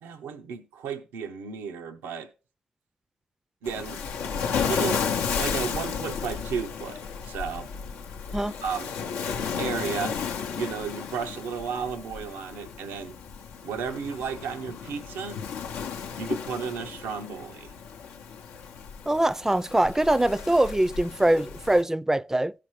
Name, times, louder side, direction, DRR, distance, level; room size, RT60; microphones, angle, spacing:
voice 1, 0.0-2.3 3.6-4.0 4.7-7.7 8.6-8.9 9.6-10.2 10.6-13.2 13.6-15.4 16.2-17.7, right 6 dB, 90° right, 0.6 m, -33 dB
Waves surf, 3.6-21.8, left 6 dB, 90° left, 0.6 m, -33 dB
voice 2, 19.1-22.5, right 1 dB, 15° right, 0.4 m, -23 dB
16.0 x 5.9 x 3.1 m
supercardioid pair, 45°, 3 cm